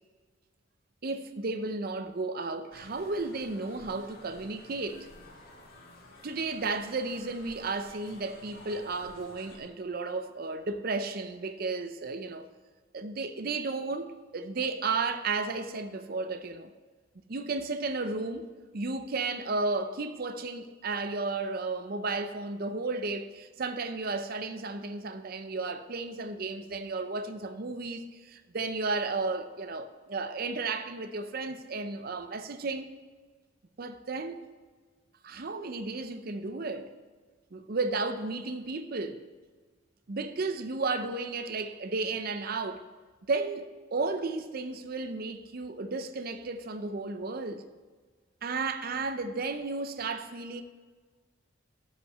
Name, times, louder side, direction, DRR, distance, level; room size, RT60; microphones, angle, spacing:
voice 1, 1.0-5.1 6.2-12.5 12.9-16.7 17.3-18.5 18.7-32.9 33.8-34.4 35.2-36.9 37.5-39.2 40.1-42.8 43.3-43.6 43.9-47.6 48.4-50.6, right 3 dB, 45° right, 0.6 m, -33 dB
sound 1, 2.7-9.6, left 2 dB, 50° left, 1.8 m, -52 dB
12.5 x 5.6 x 5.5 m
head